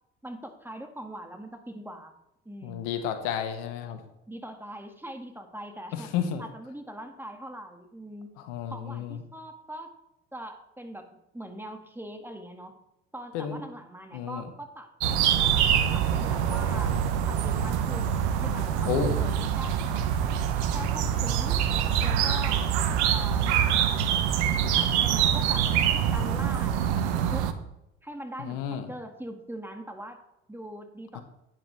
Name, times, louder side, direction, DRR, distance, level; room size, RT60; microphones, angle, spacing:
voice 1, 0.2-2.1 2.5-2.8 4.3-6.1 6.4-8.3 8.7-9.9 10.3-12.8 13.1-14.9 15.9-17.0 17.2-20.1 20.7-21.6 22.0-22.7 23.1-23.6 24.5-25.7 26.1-27.5 28.0-28.6 28.9-30.2 30.5-31.2, right 1 dB, 5° right, 4 dB, 1.8 m, -41 dB
voice 2, 2.6-4.0 5.9-6.4 8.4-9.2 13.3-13.6 14.1-14.5 18.9-19.2 28.4-28.9 31.1-31.2, left 8 dB, 65° left, 8 dB, 1.3 m, -31 dB
sound 1, 15.0-27.5, right 9 dB, 75° right, 1.0 m, -25 dB
11.5 x 9.6 x 3.3 m, 0.85 s
hypercardioid pair, 60°, 34 cm